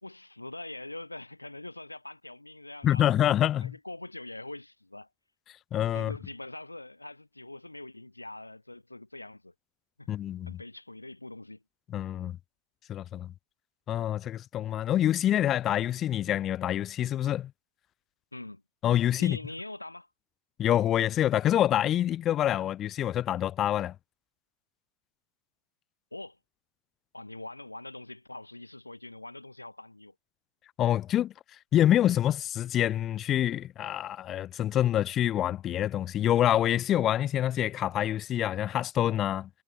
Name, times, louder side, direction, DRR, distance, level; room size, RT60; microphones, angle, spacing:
voice 1, 0.0-5.1 5.9-9.5 10.0-10.1 10.5-11.6 18.3-18.6 19.2-20.1 26.1-26.4 27.1-30.1, left 2 dB, 85° left, 1.5 m, -43 dB
voice 2, 2.8-3.7 5.7-6.1 10.1-10.5 11.9-12.4 12.9-13.3 13.9-17.5 18.8-19.4 20.6-23.9 30.8-31.3 31.7-39.5, left 11 dB, 30° left, 0.5 m, -26 dB
figure-of-eight pair, 90°, 0 cm